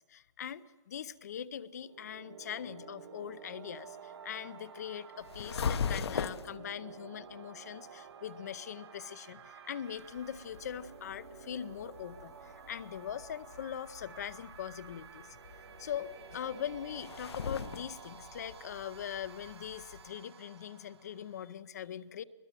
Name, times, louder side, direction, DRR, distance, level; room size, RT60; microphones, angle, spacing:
voice 1, 0.0-15.4 15.8-22.2, left 9 dB, 35° left, 17 dB, 0.6 m, -42 dB
sound 1, 1.7-21.6, right 7 dB, 60° right, 1.7 m, -52 dB
sound 2, 5.2-6.6 10.0-20.1, left 6 dB, 60° left, 1.0 m, -41 dB
21.5 x 21.0 x 7.5 m, 1.2 s
hypercardioid pair, 170°, 15 cm